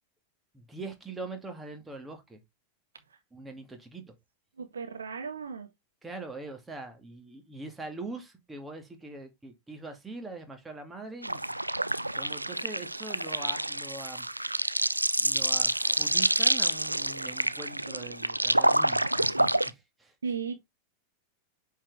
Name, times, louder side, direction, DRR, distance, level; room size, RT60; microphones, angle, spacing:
voice 1, 0.5-2.4 3.3-4.1 6.0-11.6 12.1-14.3 15.2-20.1, right 3 dB, 10° right, 2.3 m, -42 dB
voice 2, 4.6-5.7 20.2-20.6, right 6 dB, 70° right, 1.7 m, -35 dB
sound 1, 11.2-19.7, right 1 dB, 85° right, 0.4 m, -27 dB
8.6 x 4.7 x 3.5 m
figure-of-eight pair, 90°, 0 cm